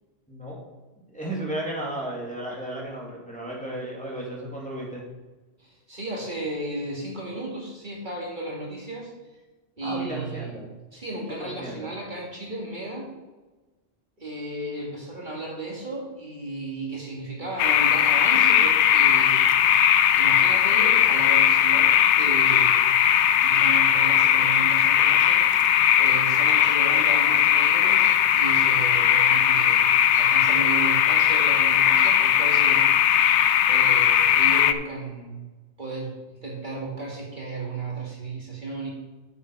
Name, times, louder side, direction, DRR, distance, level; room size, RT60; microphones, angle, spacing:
voice 1, 0.3-0.6 1.1-5.0 9.8-10.7 11.4-11.9, right 1 dB, 5° left, -4 dB, 2.5 m, -34 dB
voice 2, 5.6-9.1 9.8-10.6 10.9-13.1 14.2-19.4 20.1-32.8 33.7-35.4 35.8-36.2 36.4-38.9, right 2 dB, 45° right, -3 dB, 2.3 m, -34 dB
sound 1, 17.6-34.7, left 9 dB, 85° left, 0.9 m, -19 dB
8.8 x 8.7 x 4.7 m, 1.2 s
omnidirectional pair, 1.2 m